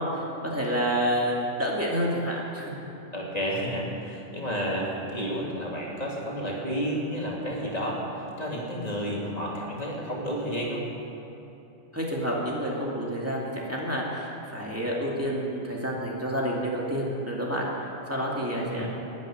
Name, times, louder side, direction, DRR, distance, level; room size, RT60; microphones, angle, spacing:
voice 1, 0.0-2.8 11.9-17.7 18.1-18.9, equal, 10° right, -4 dB, 2.3 m, -29 dB
voice 2, 3.1-10.8 18.5-18.9, equal, 35° left, -3 dB, 2.7 m, -31 dB
12.0 x 9.4 x 9.9 m, 2.9 s
omnidirectional pair, 1.2 m